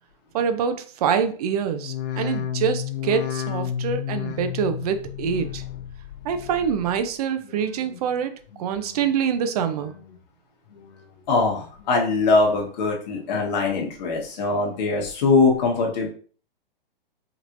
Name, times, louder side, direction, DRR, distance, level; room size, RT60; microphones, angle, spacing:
voice 1, 0.3-5.6 6.2-8.3 8.6-9.9, right 7 dB, 40° right, 9 dB, 0.6 m, -25 dB
sound 1, 1.7-7.1 7.4-8.0 8.5-9.1 9.6-10.2 10.7-11.3 11.8-12.4 12.9-13.0, left 9 dB, 65° left, 0.9 m, -33 dB
voice 2, 11.3-16.1, left 3 dB, 45° left, -1 dB, 1.5 m, -22 dB
5.1 x 3.1 x 2.6 m, 0.42 s
hypercardioid pair, 150°, 29 cm